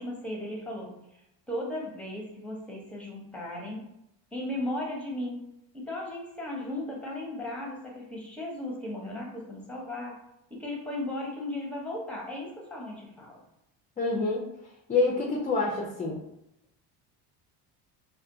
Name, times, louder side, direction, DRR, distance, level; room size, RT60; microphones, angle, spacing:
voice 1, 0.0-3.9 4.3-5.4 5.7-10.2 10.5-13.4, left 1 dB, 5° left, -2 dB, 0.8 m, -36 dB
voice 2, 14.0-14.4 14.9-16.2, left 3 dB, 20° left, -2 dB, 0.4 m, -27 dB
2.4 x 2.3 x 2.6 m, 0.83 s
supercardioid pair, 90°, 43 cm